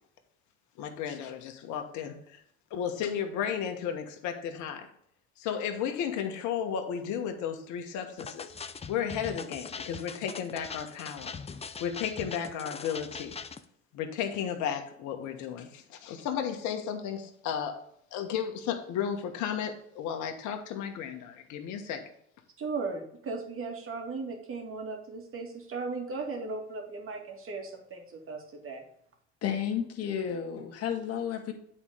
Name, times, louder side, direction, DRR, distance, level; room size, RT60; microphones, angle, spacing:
voice 1, 0.8-2.4 2.7-4.9 5.4-8.5 8.9-11.3 11.8-13.4 13.9-17.8 18.1-22.0, left 8 dB, 65° left, 5 dB, 1.3 m, -34 dB
sound 1, 8.2-13.6, left 5 dB, 20° left, 0.6 m, -42 dB
voice 2, 22.6-28.8, right 4 dB, 45° right, 2 dB, 2.3 m, -37 dB
voice 3, 29.4-31.5, left 8 dB, 50° left, 3 dB, 1.6 m, -32 dB
8.8 x 4.4 x 5.0 m, 0.70 s
supercardioid pair, 80°, 32 cm